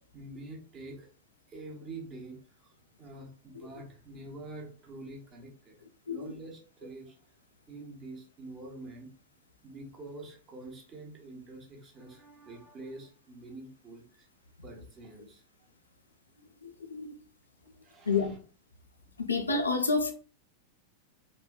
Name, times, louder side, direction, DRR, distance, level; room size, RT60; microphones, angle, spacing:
voice 1, 0.1-1.1 1.5-5.8 6.1-7.2 7.7-9.1 9.6-14.3 14.6-15.4 17.8-18.3 19.0-19.1, right 2 dB, 30° right, 0.8 m, -46 dB
voice 2, 16.6-17.2 18.1-18.3 19.2-20.1, left 4 dB, 75° left, 0.4 m, -29 dB
3.0 x 2.1 x 2.2 m
figure-of-eight pair, 90°, 0 cm